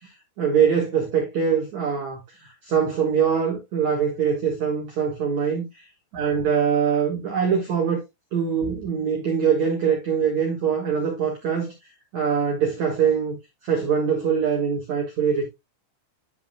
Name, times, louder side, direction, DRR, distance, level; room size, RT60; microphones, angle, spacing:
voice 1, 0.4-5.6 6.1-8.0 8.3-11.7 12.1-13.4 13.6-15.5, right 7 dB, 85° right, 1.6 m, -23 dB
12.0 x 5.3 x 2.2 m
omnidirectional pair, 5.9 m